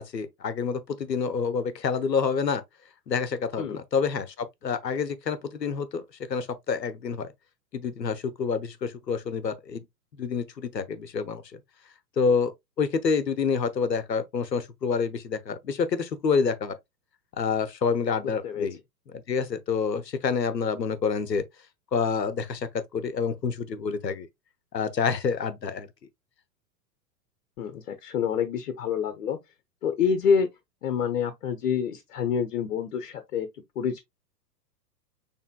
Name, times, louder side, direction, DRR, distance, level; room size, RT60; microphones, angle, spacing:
voice 1, 0.0-2.6 3.1-7.3 7.7-9.8 10.2-11.6 12.2-12.5 12.8-16.7 17.4-18.8 19.1-21.4 21.9-24.3 24.7-25.9, left 5 dB, 80° left, 0.9 m, -28 dB
voice 2, 27.6-29.4 29.8-30.5 30.8-33.5 33.8-34.0, left 7 dB, 55° left, 1.0 m, -27 dB
6.5 x 3.4 x 2.2 m
figure-of-eight pair, 105°, 50 cm